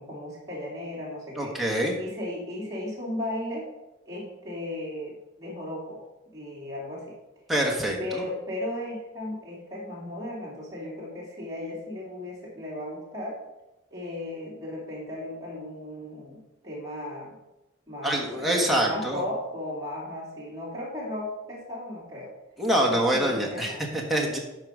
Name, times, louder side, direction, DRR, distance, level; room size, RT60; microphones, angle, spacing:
voice 1, 0.0-1.5 2.0-3.7 4.1-7.1 8.0-13.4 13.9-17.4 17.9-22.3 22.8-23.9, left 1 dB, 20° right, -6 dB, 2.5 m, -36 dB
voice 2, 1.4-1.9 7.5-8.2 18.0-19.2 22.6-24.4, right 1 dB, ahead, -1 dB, 1.4 m, -25 dB
11.5 x 4.7 x 4.9 m, 0.98 s
head